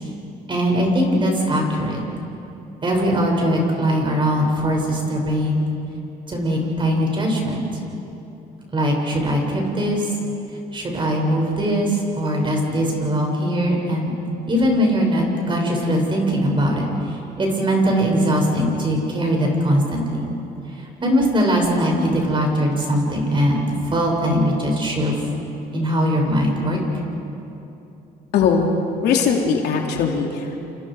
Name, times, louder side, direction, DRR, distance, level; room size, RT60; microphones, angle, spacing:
voice 1, 0.5-2.0 2.8-5.6 6.3-7.6 8.7-10.1 10.7-14.1 14.5-20.2 20.8-25.2 25.7-26.8, equal, 30° right, 0 dB, 6.9 m, -21 dB
voice 2, 28.3-30.6, left 5 dB, 75° left, 0 dB, 3.3 m, -20 dB
29.5 x 28.5 x 5.0 m, 2.9 s
cardioid pair, 110°, 17 cm